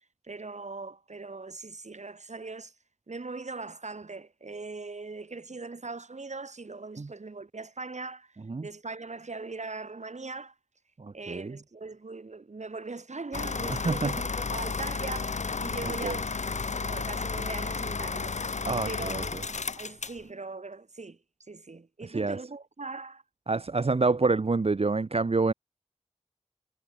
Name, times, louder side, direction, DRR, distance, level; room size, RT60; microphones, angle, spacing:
voice 1, 0.2-2.7 3.1-8.3 8.6-10.5 11.1-18.4 18.8-21.2 21.5-23.2, right 3 dB, 70° right, 4.6 m, -40 dB
voice 2, 11.0-11.6 13.7-14.2 16.0-16.2 18.7-19.4 22.0-22.4 23.5-25.5, right 3 dB, 55° right, 0.9 m, -27 dB
sound 1, 13.3-20.2, left 4 dB, 75° left, 1.0 m, -32 dB
wide cardioid pair, 45°, 12 cm